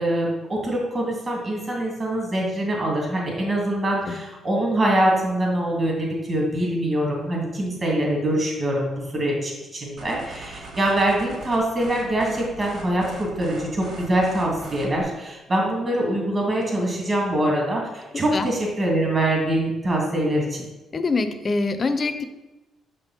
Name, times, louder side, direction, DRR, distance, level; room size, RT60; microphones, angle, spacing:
voice 1, 0.0-20.7, right 1 dB, 35° right, -2 dB, 2.7 m, -24 dB
sound 1, 10.0-15.0, right 3 dB, 70° right, 1.6 m, -40 dB
voice 2, 20.9-22.2, left 3 dB, 40° left, 10 dB, 0.6 m, -24 dB
6.5 x 5.3 x 4.4 m, 1.1 s
cardioid pair, 90°, 0 cm